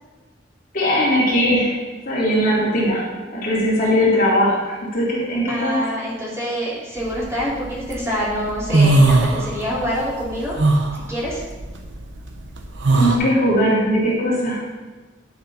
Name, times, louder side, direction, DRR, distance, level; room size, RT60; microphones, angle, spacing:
voice 1, 0.7-1.7 2.0-3.0 3.3-5.8 12.9-14.6, equal, 50° left, -6 dB, 2.7 m, -19 dB
voice 2, 5.5-10.6 11.1-11.4, equal, 15° right, -7 dB, 2.7 m, -26 dB
sound 1, 7.1-7.9 8.3-9.9 10.2-13.2, right 2 dB, 80° right, 1.1 m, -18 dB
9.9 x 7.0 x 4.1 m, 1.3 s
head